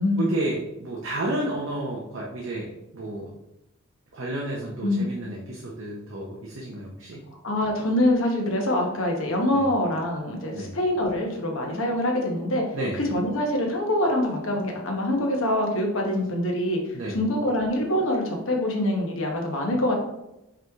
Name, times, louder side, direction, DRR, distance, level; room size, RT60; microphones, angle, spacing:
voice 1, 0.2-3.3 4.1-7.2 9.5-9.7 10.5-10.7 12.7-13.0 16.9-17.2, right 1 dB, 70° right, -3 dB, 0.7 m, -31 dB
voice 2, 7.4-12.6 12.9-16.8 17.1-19.9, left 1 dB, 75° left, 1 dB, 1.0 m, -25 dB
4.9 x 3.1 x 3.5 m, 0.90 s
head